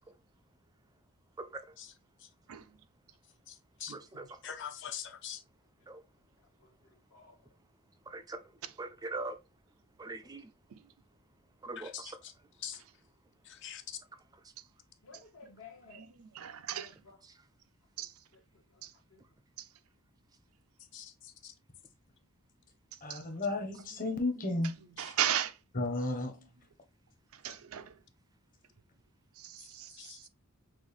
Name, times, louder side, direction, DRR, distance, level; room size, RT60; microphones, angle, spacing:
voice 1, 1.4-1.8 3.9-4.5 5.9-6.0 8.1-9.4 10.0-10.5 11.6-12.2 14.4-14.5 17.2-17.3, right 2 dB, 15° right, 0.4 m, -43 dB
voice 2, 3.5-3.9 4.4-5.4 11.8-12.3 12.6-12.8 13.4-14.0 20.9-21.5 25.0-25.1 29.6-30.3, left 9 dB, 55° left, 0.7 m, -44 dB
voice 3, 6.4-7.3 15.0-16.0 16.8-17.2 18.0-19.2, left 5 dB, 75° left, 1.5 m, -57 dB
voice 4, 15.9-16.9 18.0-18.1 18.8-18.9 19.6-19.7 23.1-23.2 24.4-24.7 25.0-25.6 27.3-28.0 29.4-30.3, right 10 dB, 75° right, 0.5 m, -37 dB
voice 5, 23.0-24.7 25.7-26.3, left 2 dB, 40° left, 1.1 m, -33 dB
6.0 x 2.5 x 3.2 m
head